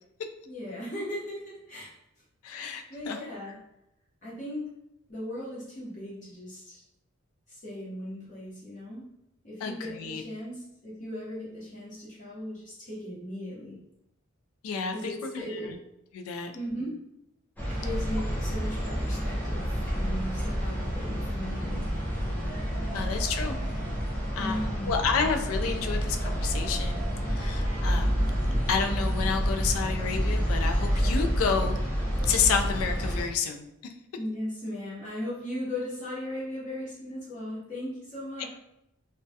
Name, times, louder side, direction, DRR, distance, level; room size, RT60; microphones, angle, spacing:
voice 1, 0.4-1.9 2.9-3.6 4.2-4.7 5.1-6.8 7.5-9.0 9.4-13.8 14.9-15.7 16.5-16.9 17.7-21.9 24.4-24.9 34.2-38.4, left 1 dB, 35° left, -8 dB, 0.7 m, -37 dB
voice 2, 2.4-3.2 9.6-10.2 14.6-15.1 15.7-15.8 16.1-16.5 22.9-23.6 24.4-27.0 27.3-28.2 28.7-31.8 32.2-33.6 38.4-38.5, left 6 dB, 85° left, 6 dB, 0.3 m, -30 dB
sound 1, 17.6-33.2, equal, 10° left, 0.4 m, -29 dB
2.2 x 2.1 x 2.6 m, 0.83 s
head